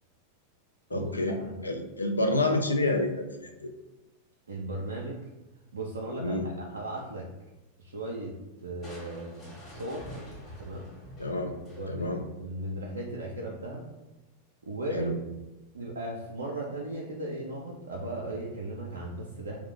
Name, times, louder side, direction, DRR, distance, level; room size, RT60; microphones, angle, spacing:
voice 1, 0.9-3.7 6.2-6.5 11.2-11.5 11.9-12.2 14.9-15.2, left 2 dB, 80° left, 5 dB, 0.3 m, -29 dB
voice 2, 4.5-5.2 5.7-7.3 7.8-10.1 10.6-10.8 11.8-12.1 12.4-13.9 14.6-15.2 15.7-19.6, right 1 dB, 70° right, -2 dB, 0.3 m, -36 dB
Crushing, 8.8-12.2, equal, 25° left, 1.1 m, -46 dB
2.4 x 2.1 x 3.5 m, 1.0 s
figure-of-eight pair, 90°, 0 cm